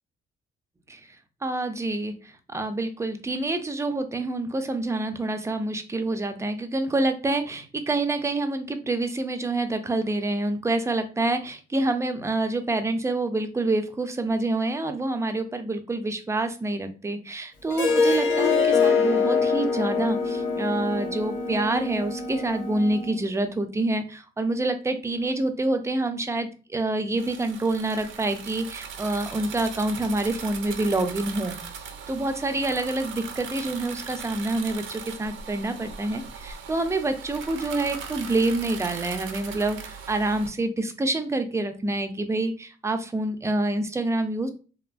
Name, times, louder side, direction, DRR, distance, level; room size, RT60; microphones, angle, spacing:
voice 1, 1.4-44.5, right 2 dB, 15° right, 7 dB, 0.4 m, -27 dB
Harp, 17.7-22.9, left 5 dB, 70° left, 0.7 m, -24 dB
Wind instrument woodwind instrument, 19.0-23.3, right 3 dB, 35° left, 0.6 m, -37 dB
sound 1, 27.2-40.5, right 6 dB, 75° right, 0.5 m, -39 dB
2.8 x 2.4 x 2.2 m, 0.36 s
cardioid pair, 90°, 20 cm